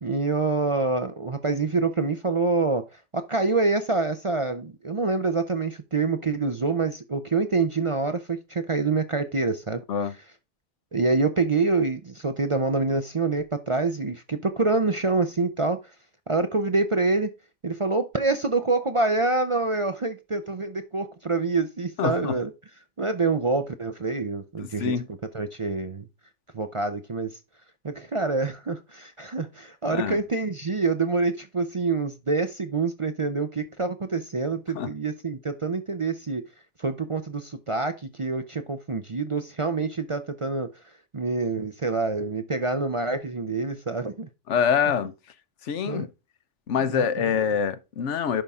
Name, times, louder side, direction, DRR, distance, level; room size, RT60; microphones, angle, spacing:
voice 1, 0.0-2.8 3.1-9.8 10.9-15.8 16.3-17.3 17.6-22.5 23.0-24.9 25.3-26.0 26.5-27.3 27.8-36.4 36.8-40.7 41.1-44.3 45.8-46.1 46.9-47.3, right 3 dB, 35° right, 0.6 m, -26 dB
voice 2, 22.0-22.4 24.6-25.1 29.9-30.2 34.7-34.9 44.5-45.1 45.6-46.1 46.7-48.4, left 7 dB, 75° left, 1.1 m, -25 dB
10.5 x 5.6 x 3.6 m
omnidirectional pair, 1.2 m